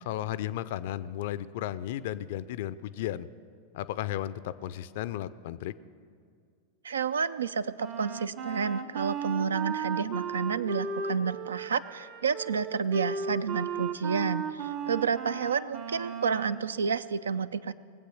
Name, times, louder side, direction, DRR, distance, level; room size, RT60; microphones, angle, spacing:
voice 1, 0.1-3.3 3.7-5.7, left 12 dB, 50° left, 16 dB, 0.4 m, -34 dB
voice 2, 6.8-17.7, right 6 dB, 70° right, 16 dB, 0.4 m, -30 dB
Wind instrument woodwind instrument, 7.8-16.6, right 6 dB, 35° right, 0.8 m, -35 dB
20.5 x 8.1 x 6.3 m, 2.2 s
figure-of-eight pair, 90°, 0 cm